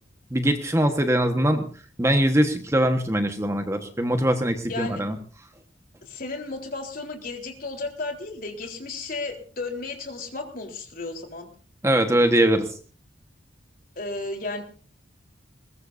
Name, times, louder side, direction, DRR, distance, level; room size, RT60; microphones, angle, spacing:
voice 1, 0.3-1.6 2.0-5.1 11.8-12.7, right 1 dB, 15° right, 6 dB, 1.3 m, -22 dB
voice 2, 4.7-5.0 6.1-11.5 14.0-14.6, left 3 dB, 45° left, 3 dB, 3.8 m, -33 dB
22.0 x 20.0 x 2.7 m, 0.40 s
head